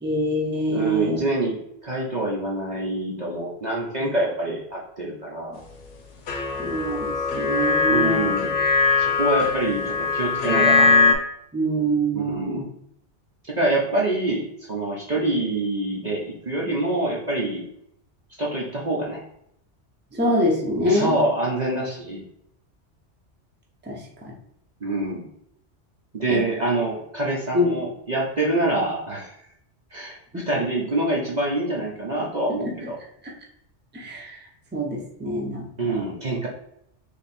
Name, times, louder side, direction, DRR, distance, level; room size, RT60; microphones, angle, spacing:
voice 1, 0.0-1.2 4.0-4.1 5.5-5.6 6.6-8.3 11.5-12.6 20.1-21.2 23.9-24.3 26.3-26.4 27.5-27.8 30.3-30.5 32.6-32.9 33.2-33.3 33.9-34.4 34.7-36.1, equal, 10° right, -2 dB, 0.7 m, -25 dB
voice 2, 0.7-5.6 7.9-8.6 9.0-10.9 12.1-12.7 13.5-17.6 18.4-19.2 20.9-22.2 24.8-25.3 26.1-29.3 29.9-30.2 30.5-33.0 35.8-36.5, right 2 dB, 45° right, -4 dB, 0.8 m, -26 dB
sound 1, 6.3-11.1, left 4 dB, 90° left, 1.1 m, -21 dB
3.4 x 2.9 x 4.2 m, 0.75 s
omnidirectional pair, 1.2 m